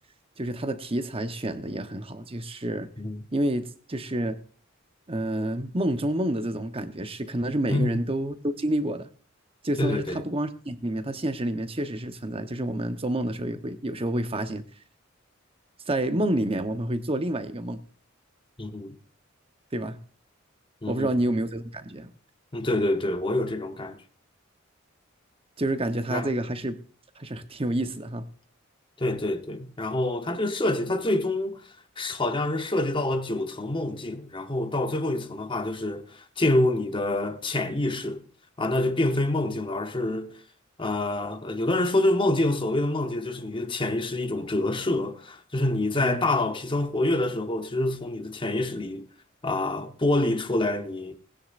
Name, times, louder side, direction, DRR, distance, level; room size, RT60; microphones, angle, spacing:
voice 1, 0.4-2.9 3.3-4.4 5.1-9.1 9.6-14.6 15.9-17.8 19.7-20.0 20.9-22.1 25.6-26.8 27.2-28.2 45.9-46.3, right 1 dB, 30° right, 1.0 m, -29 dB
voice 2, 7.7-8.0 9.8-10.2 18.6-19.0 20.8-21.1 22.5-24.0 26.1-26.3 29.0-31.6 32.0-38.2 38.6-40.4 40.8-49.1 49.4-51.2, left 2 dB, 25° left, 1.1 m, -26 dB
20.0 x 9.9 x 2.6 m
head